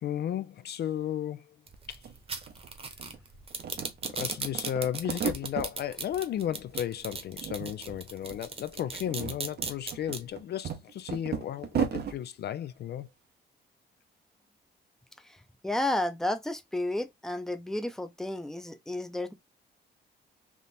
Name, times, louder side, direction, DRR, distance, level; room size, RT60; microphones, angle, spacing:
voice 1, 0.0-1.5 1.9-2.0 4.1-13.1, left 10 dB, 55° left, 0.4 m, -34 dB
sound 1, 1.7-10.2, right 4 dB, 30° right, 1.0 m, -36 dB
sound 2, 1.7-1.8 2.0-3.2 3.5-5.7 6.1-6.9 7.1-8.0 8.2-8.4 8.9-12.2, right 8 dB, 55° right, 0.8 m, -35 dB
voice 2, 15.6-19.3, left 1 dB, ahead, 0.6 m, -32 dB
3.6 x 2.5 x 4.2 m
cardioid pair, 90°, 20 cm